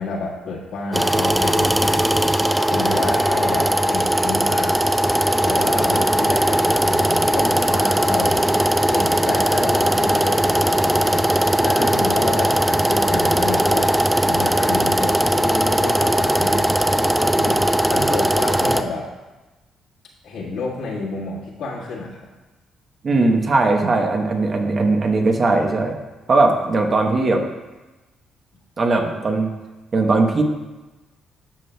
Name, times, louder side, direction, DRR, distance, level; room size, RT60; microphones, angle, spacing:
voice 1, 0.0-2.4 2.7-4.8 5.4-8.5 8.9-17.6 17.9-19.1 20.2-22.3, left 3 dB, 80° left, -4 dB, 1.6 m, -29 dB
sound 1, 0.9-18.8, right 1 dB, 5° right, 0.3 m, -19 dB
voice 2, 23.0-26.0 26.3-27.5 28.8-29.5 29.9-30.4, right 3 dB, 40° right, 3 dB, 1.0 m, -19 dB
12.0 x 6.2 x 2.2 m, 1.1 s
cardioid pair, 90°, 0 cm